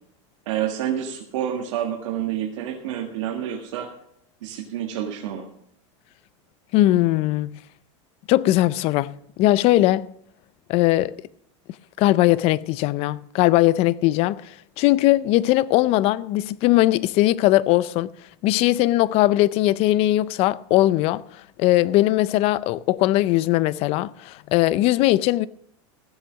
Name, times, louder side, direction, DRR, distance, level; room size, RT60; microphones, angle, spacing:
voice 1, 0.4-3.9 4.4-5.5, right 10 dB, 80° right, 1.7 m, -28 dB
voice 2, 6.7-7.6 8.3-10.1 10.7-11.1 12.0-14.4 14.8-18.1 18.4-21.2 21.6-25.5, left 16 dB, 40° left, 0.4 m, -19 dB
15.5 x 8.0 x 6.3 m
supercardioid pair, 150°, 16 cm